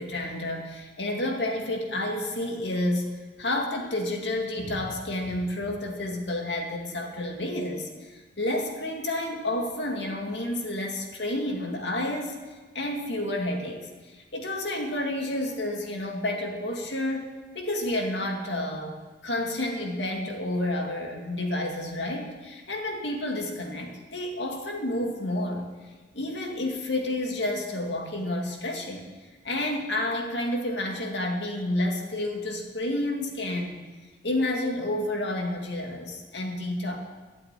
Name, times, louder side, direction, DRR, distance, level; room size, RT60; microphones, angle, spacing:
voice 1, 0.0-3.1 3.4-12.4 12.7-25.7 26.1-29.1 29.4-33.8 34.2-37.0, left 1 dB, 75° left, 1 dB, 2.2 m, -30 dB
12.5 x 7.9 x 9.0 m, 1.4 s
head